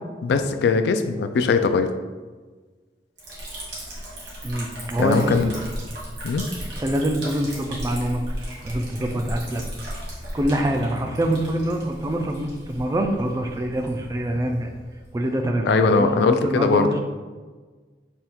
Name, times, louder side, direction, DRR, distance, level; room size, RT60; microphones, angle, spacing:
voice 1, 0.2-1.9 5.0-5.5 6.2-6.4 15.6-16.9, left 4 dB, 70° left, 8 dB, 0.3 m, -20 dB
Liquid, 3.2-15.6, equal, 75° right, 1.4 m, -36 dB
voice 2, 4.4-5.5 6.7-8.2 8.6-9.6 10.3-14.7 15.1-17.0, right 1 dB, 20° right, 3 dB, 0.3 m, -25 dB
3.5 x 2.3 x 4.3 m, 1.4 s
head